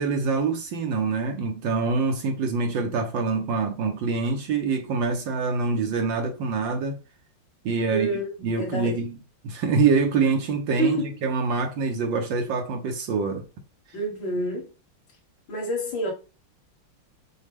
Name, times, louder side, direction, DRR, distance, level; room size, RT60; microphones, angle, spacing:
voice 1, 0.0-7.0 7.6-9.2 9.4-13.4, right 4 dB, 70° right, 1.3 m, -25 dB
voice 2, 7.9-9.0 10.8-11.1 13.9-14.7 15.5-16.1, right 1 dB, 60° left, 2.1 m, -28 dB
6.3 x 2.3 x 3.4 m
omnidirectional pair, 2.4 m